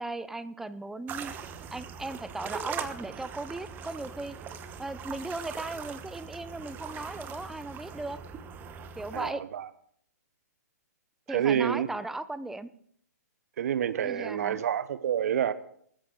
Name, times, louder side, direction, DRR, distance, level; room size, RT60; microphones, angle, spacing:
voice 1, 0.0-1.3 1.7-4.4 4.8-8.2 9.0-9.4 11.3-12.7 14.0-14.6, right 2 dB, 5° right, 0.6 m, -37 dB
sound 1, 1.1-9.3, right 7 dB, 20° right, 1.1 m, -41 dB
voice 2, 9.1-9.7 11.3-11.9 13.6-15.5, right 9 dB, 60° right, 1.0 m, -28 dB
20.0 x 14.0 x 3.9 m
hypercardioid pair, 135°, 9 cm